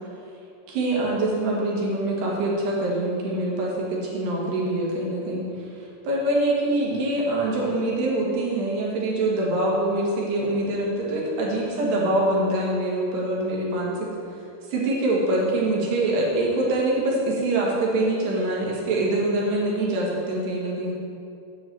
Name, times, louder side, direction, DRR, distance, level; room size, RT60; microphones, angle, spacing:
voice 1, 0.7-5.7 6.0-14.1 14.7-21.0, right 1 dB, 65° right, -3 dB, 3.6 m, -24 dB
9.1 x 6.0 x 7.7 m, 2.6 s
omnidirectional pair, 5.6 m